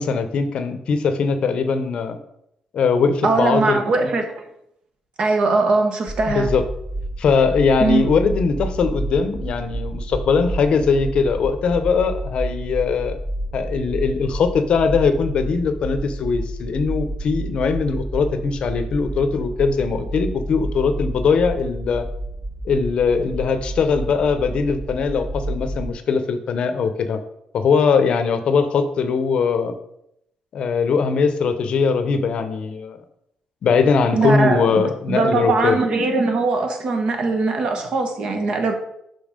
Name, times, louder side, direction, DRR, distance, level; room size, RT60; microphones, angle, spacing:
voice 1, 0.0-2.2 2.7-4.1 6.3-6.6 7.2-13.2 13.5-22.0 22.6-27.2 27.5-29.7 30.5-33.0 33.6-35.8, left 5 dB, 55° left, 10 dB, 0.7 m, -20 dB
voice 2, 3.2-4.3 5.2-6.5 7.8-8.1 34.1-38.7, right 3 dB, 50° right, 5 dB, 1.2 m, -20 dB
sound 1, 6.1-25.9, right 1 dB, 5° right, 0.6 m, -30 dB
5.7 x 5.4 x 5.1 m, 0.78 s
cardioid pair, 140°, 2 cm